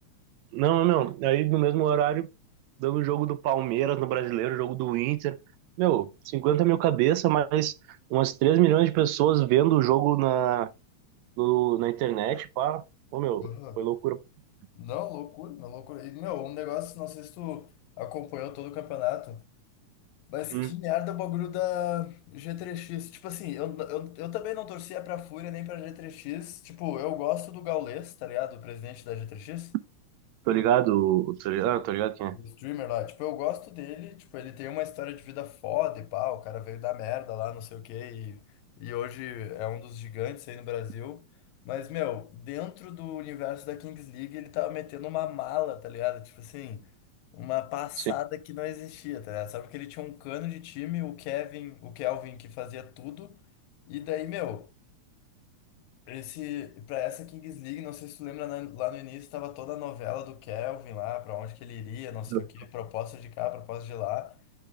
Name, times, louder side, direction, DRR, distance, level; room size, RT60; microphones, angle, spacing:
voice 1, 0.5-2.3 2.8-5.4 5.8-7.7 8.1-10.7 11.4-12.8 13.1-13.5 13.8-14.2 20.5-20.7 30.5-32.4 62.3-62.4, right 13 dB, 80° right, 1.8 m, -24 dB
voice 2, 13.4-13.8 14.8-17.7 18.0-19.4 20.3-29.7 32.3-38.4 38.8-41.2 41.7-46.9 47.3-53.4 53.9-54.7 56.1-64.4, left 14 dB, 90° left, 2.0 m, -35 dB
8.3 x 6.3 x 2.2 m
omnidirectional pair, 3.3 m